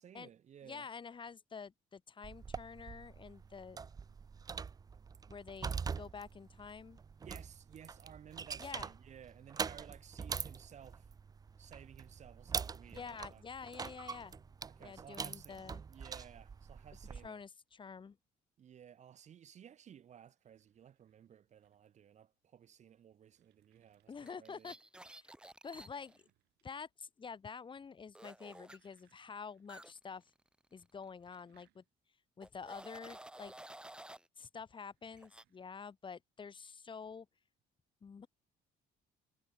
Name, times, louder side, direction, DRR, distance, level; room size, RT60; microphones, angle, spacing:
voice 1, 0.0-0.9 7.2-11.1 11.6-13.4 14.7-17.4 18.6-24.7, right 9 dB, 45° right, 0.9 m, -57 dB
voice 2, 0.6-3.8 5.3-7.0 8.6-8.9 12.9-14.4 14.8-15.8 17.2-18.2 24.1-24.7 25.0-25.3 25.6-26.3 26.6-30.3 30.7-31.8 32.4-33.5 34.4-37.3 38.0-38.3, left 5 dB, 30° left, 1.4 m, -48 dB
sound 1, 2.2-17.3, right 5 dB, 20° right, 0.4 m, -44 dB
sound 2, 20.3-22.1 22.8-24.5 25.5-26.9 27.2-27.7 28.1-29.8 30.1-30.2 30.9-34.0 34.8-35.7, right 17 dB, 85° right, 7.5 m, -79 dB
sound 3, 24.2-26.2 28.1-28.8 29.7-31.1 31.3-31.6 32.4-34.3 35.2-35.4, right 1 dB, 5° right, 1.0 m, -53 dB
cardioid pair, 110°, 17 cm